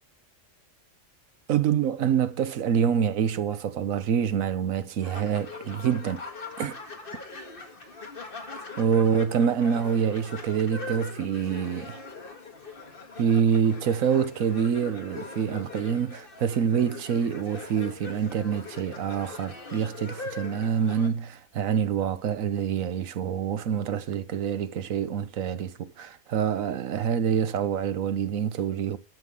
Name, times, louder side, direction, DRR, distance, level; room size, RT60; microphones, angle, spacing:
voice 1, 1.5-6.2 6.6-6.8 8.5-12.0 13.2-29.0, right 7 dB, 85° right, 1.3 m, -26 dB
sound 1, 5.0-21.1, left 3 dB, 40° left, 1.9 m, -41 dB
12.0 x 5.6 x 7.4 m
omnidirectional pair, 1.4 m